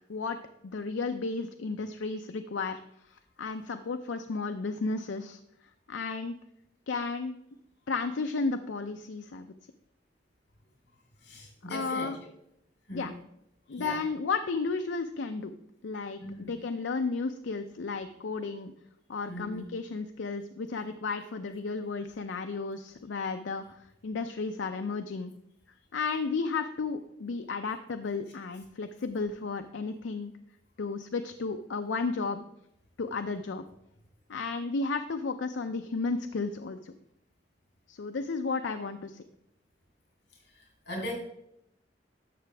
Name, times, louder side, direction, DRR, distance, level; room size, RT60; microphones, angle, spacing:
voice 1, 0.6-2.8 3.1-5.4 5.9-6.3 6.9-7.4 7.9-9.5 11.6-12.2 12.9-13.1 13.7-15.5 15.8-18.7 19.1-25.3 25.9-30.3 30.8-32.4 33.0-33.6 34.3-36.9 37.9-39.2, left 4 dB, 85° left, 7 dB, 0.5 m, -33 dB
voice 2, 11.2-12.2 12.9-13.1 13.7-14.0 16.2-16.5 19.3-19.7 40.5-41.1, left 1 dB, 65° left, 0 dB, 3.3 m, -39 dB
11.5 x 6.9 x 3.3 m, 0.78 s
head